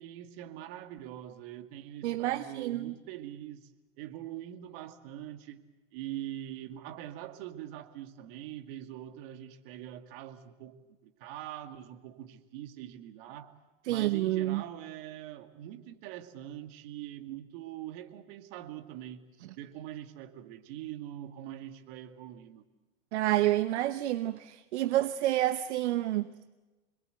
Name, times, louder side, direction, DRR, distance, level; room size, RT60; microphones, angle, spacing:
voice 1, 0.0-3.7 4.0-5.6 5.9-10.7 11.0-13.5 13.9-19.2 19.6-22.6, right 12 dB, 55° right, 2.3 m, -43 dB
voice 2, 2.0-2.9 13.8-14.6 23.1-26.5, right 15 dB, 70° right, 1.0 m, -29 dB
27.0 x 21.5 x 8.0 m
hypercardioid pair, 115°, 35 cm